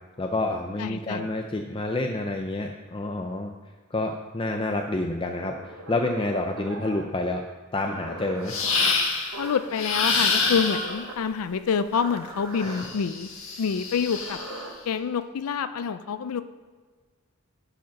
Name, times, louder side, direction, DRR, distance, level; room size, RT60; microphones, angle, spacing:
voice 1, 0.2-3.5 3.9-7.5 7.7-8.6 12.6-12.8, left 2 dB, 25° left, 4 dB, 0.4 m, -28 dB
voice 2, 0.8-1.3 9.4-13.3 13.6-14.4 14.9-16.4, left 6 dB, 85° left, 11 dB, 0.4 m, -27 dB
sound 1, 5.4-7.1 7.8-8.7 9.3-9.7 10.2-11.2 11.9-12.9 13.9-14.7, right 2 dB, 80° right, 1.4 m, -39 dB
sound 2, 8.5-9.3 9.7-11.0 12.7-14.6, left 4 dB, 65° left, 1.7 m, -26 dB
11.0 x 5.0 x 5.8 m, 1.5 s
head